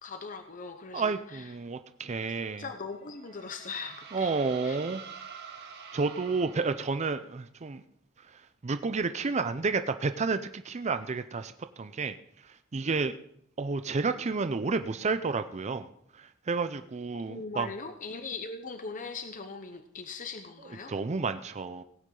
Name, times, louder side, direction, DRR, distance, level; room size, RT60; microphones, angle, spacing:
voice 1, 0.0-1.5 2.3-4.3 4.6-4.8 17.1-20.9, left 4 dB, 40° left, 7 dB, 0.8 m, -40 dB
voice 2, 0.9-2.6 4.1-5.0 5.9-7.8 8.6-11.5 11.8-12.1 12.7-13.1 13.6-15.9 16.2-17.7 20.9-21.8, right 4 dB, 35° right, 10 dB, 0.5 m, -30 dB
sound 1, 3.0-7.3, right 6 dB, 50° right, 1.8 m, -47 dB
17.5 x 9.3 x 3.8 m, 0.69 s
head